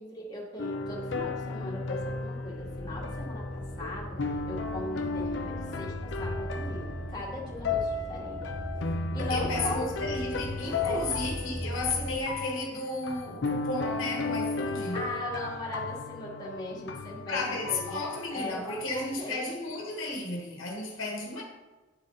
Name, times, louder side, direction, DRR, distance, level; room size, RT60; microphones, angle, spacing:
voice 1, 0.0-4.2 4.5-8.4 9.1-9.8 10.8-11.0 14.9-19.6, left 1 dB, 20° left, 1.8 m, -39 dB
sound 1, 0.6-19.2, left 3 dB, 55° left, 0.5 m, -35 dB
sound 2, 0.8-12.2, right 1 dB, 5° left, 0.4 m, -39 dB
voice 2, 9.2-15.1 17.3-21.4, left 2 dB, 75° left, 1.3 m, -33 dB
9.7 x 4.0 x 3.8 m
head